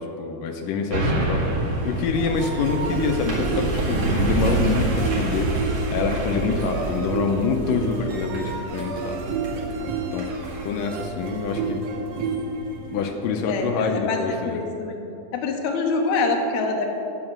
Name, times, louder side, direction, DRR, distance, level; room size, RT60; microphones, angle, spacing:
voice 1, 0.0-1.5 1.8-5.5 5.9-9.3 10.1-10.3 10.6-11.9 12.9-14.6, left 5 dB, 85° left, 3 dB, 2.4 m, -26 dB
sound 1, 0.9-12.3 12.8-12.9, right 2 dB, 50° right, 3.1 m, -28 dB
sound 2, 2.1-14.0, right 3 dB, 65° right, 1.9 m, -31 dB
voice 2, 13.5-15.0 15.3-16.9, left 3 dB, 70° left, 2 dB, 2.3 m, -25 dB
10.0 x 7.7 x 7.2 m, 2.8 s
omnidirectional pair, 3.8 m